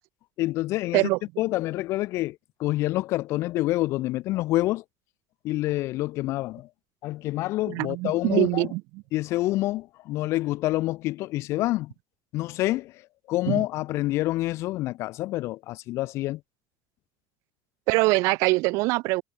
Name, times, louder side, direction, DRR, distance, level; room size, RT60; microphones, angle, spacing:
voice 1, 0.4-1.1 1.4-4.8 5.4-6.7 7.0-8.7 9.1-11.9 12.3-12.9 13.3-16.4, left 17 dB, 65° left, 0.4 m, -27 dB
voice 2, 7.7-9.0 13.5-13.6 17.9-19.2, right 24 dB, 85° right, 0.5 m, -23 dB
cardioid pair, 140°, 5 cm